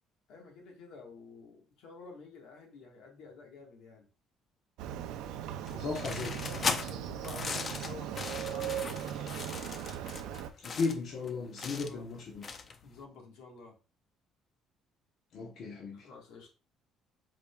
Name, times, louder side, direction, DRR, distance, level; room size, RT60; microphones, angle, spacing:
voice 1, 0.3-4.1 6.8-9.2 11.7-12.0 12.8-13.7 15.9-16.5, left 4 dB, 80° left, 1 dB, 1.6 m, -50 dB
Motorcycle, 4.8-10.5, right 10 dB, 85° right, 0.5 m, -38 dB
voice 2, 5.7-6.7 10.6-12.4 15.3-16.1, left 4 dB, 60° left, -1 dB, 1.0 m, -36 dB
sound 1, 5.7-12.9, left 5 dB, 40° left, 0.5 m, -38 dB
5.0 x 4.2 x 2.3 m, 0.34 s
cardioid pair, 110°, 0 cm